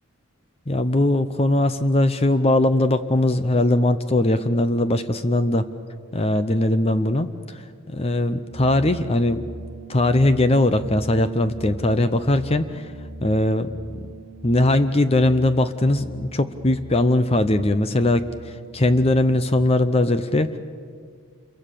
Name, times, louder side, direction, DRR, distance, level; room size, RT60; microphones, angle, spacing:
voice 1, 0.7-5.6 6.1-7.3 7.9-9.4 9.9-12.8 13.2-13.7 14.4-18.3 18.7-20.5, left 1 dB, 25° left, 11 dB, 0.7 m, -20 dB
sound 1, 8.5-19.6, right 1 dB, 85° left, 6.8 m, -40 dB
28.0 x 23.0 x 6.8 m, 2.1 s
head